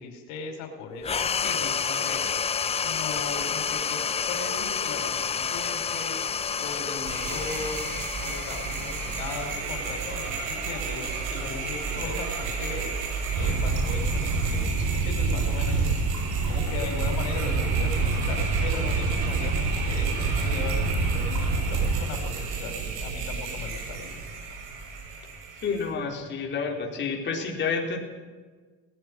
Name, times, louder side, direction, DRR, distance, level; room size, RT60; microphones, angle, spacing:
voice 1, 0.0-2.2 2.8-6.1 6.6-7.9 8.2-12.9 13.3-24.1, left 4 dB, 85° left, 4 dB, 4.8 m, -38 dB
sound 1, 1.0-9.9, left 6 dB, 20° left, 0.6 m, -29 dB
sound 2, 7.1-25.9, right 4 dB, 90° right, 7.7 m, -33 dB
sound 3, 13.3-22.0, right 3 dB, 60° right, 6.6 m, -26 dB
voice 2, 25.6-28.0, left 5 dB, 35° left, 0 dB, 4.5 m, -29 dB
20.0 x 16.0 x 9.9 m, 1.4 s
cardioid pair, 130°, 32 cm